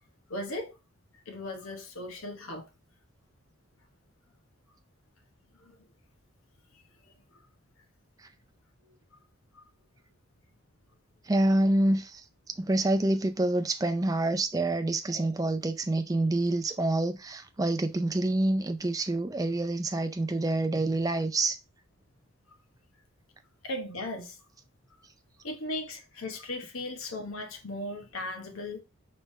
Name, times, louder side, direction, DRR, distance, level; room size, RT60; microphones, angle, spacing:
voice 1, 0.3-0.7 1.3-2.7 5.6-5.8 23.6-24.4 25.4-28.8, left 1 dB, 85° left, 1.1 m, -37 dB
voice 2, 11.3-12.2 12.6-21.6, right 2 dB, 15° right, 0.4 m, -27 dB
4.9 x 3.3 x 3.1 m
head